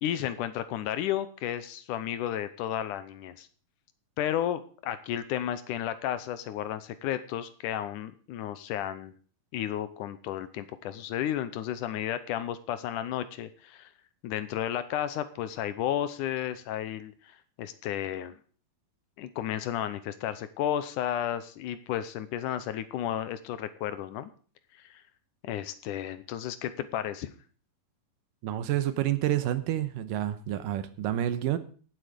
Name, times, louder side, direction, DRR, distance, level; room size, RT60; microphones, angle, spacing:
voice 1, 0.0-3.5 4.2-9.1 9.5-13.9 14.2-17.3 17.6-18.4 19.2-24.3 24.8-24.9 25.4-27.3, left 11 dB, 75° left, 13 dB, 2.2 m, -33 dB
voice 2, 28.4-31.6, right 12 dB, 80° right, 12 dB, 2.6 m, -29 dB
17.0 x 8.2 x 5.1 m, 0.41 s
omnidirectional pair, 3.8 m